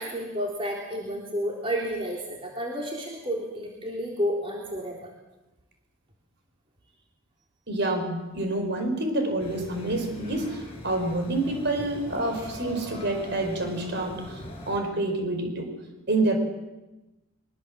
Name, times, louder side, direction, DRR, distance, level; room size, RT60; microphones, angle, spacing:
voice 1, 0.0-5.1 11.8-11.9, equal, 25° right, -1 dB, 3.6 m, -31 dB
voice 2, 7.7-15.7 16.1-16.4, right 2 dB, 50° right, 5 dB, 5.1 m, -28 dB
sound 1, 9.4-14.8, left 1 dB, 25° left, 6.3 m, -41 dB
23.5 x 22.5 x 7.6 m, 1.0 s
head